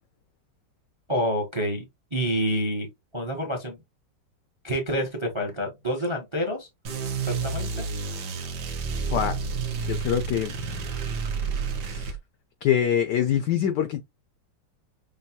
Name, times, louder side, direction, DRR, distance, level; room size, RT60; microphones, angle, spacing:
voice 1, 1.1-1.8 2.1-2.9 3.1-3.8 4.6-6.7 7.3-7.8, equal, 35° right, 0.4 m, -28 dB
sound 1, 6.8-12.2, right 5 dB, 60° right, 1.4 m, -30 dB
voice 2, 9.9-10.6 11.8-12.2 12.6-14.0, left 9 dB, 80° left, 0.9 m, -24 dB
6.3 x 2.3 x 2.8 m
omnidirectional pair, 2.3 m